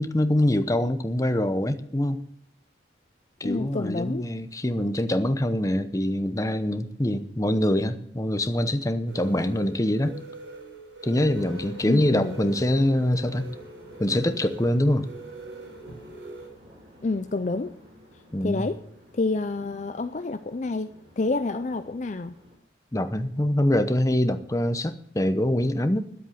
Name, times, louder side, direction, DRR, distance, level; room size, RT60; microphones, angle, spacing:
voice 1, 0.0-2.2 3.4-10.1 11.0-13.5 14.0-15.1 18.3-18.7 22.9-26.0, left 1 dB, 20° left, 0.8 m, -24 dB
voice 2, 3.4-4.2 11.8-12.3 17.0-17.7 18.4-18.8 19.1-22.3, left 3 dB, 40° left, 0.5 m, -28 dB
sound 1, 9.1-16.5, right 2 dB, 75° right, 3.7 m, -43 dB
sound 2, 11.3-22.6, equal, 30° right, 4.3 m, -50 dB
10.5 x 8.1 x 9.5 m
head